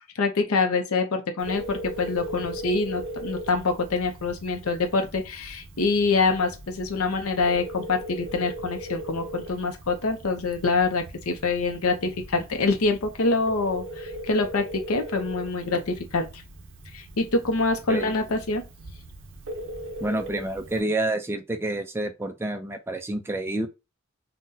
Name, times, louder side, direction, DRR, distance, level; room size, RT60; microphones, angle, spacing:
voice 1, 0.2-16.4 16.9-18.6, left 3 dB, 80° left, 0.6 m, -25 dB
Telephone, 1.4-20.8, right 1 dB, 60° right, 0.6 m, -39 dB
voice 2, 20.0-23.7, right 2 dB, 10° right, 0.3 m, -28 dB
3.7 x 2.2 x 2.6 m
head